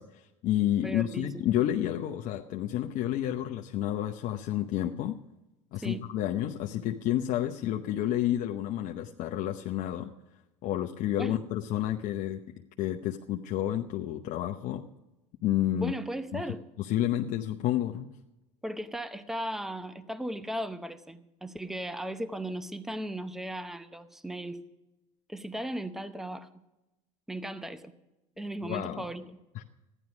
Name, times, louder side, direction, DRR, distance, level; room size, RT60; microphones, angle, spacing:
voice 1, 0.0-5.2 5.7-10.1 10.6-12.4 12.8-14.8 15.4-15.9 16.3-16.4 16.8-18.1 28.6-29.0 29.5-29.6, left 12 dB, 55° left, 3 dB, 0.8 m, -30 dB
voice 2, 0.8-1.3 5.8-6.0 11.2-11.4 15.7-16.6 18.6-24.7 25.3-26.5 27.3-27.9 28.4-29.4, right 1 dB, ahead, 12 dB, 0.8 m, -36 dB
14.0 x 11.0 x 6.0 m, 0.98 s
supercardioid pair, 95°, 17 cm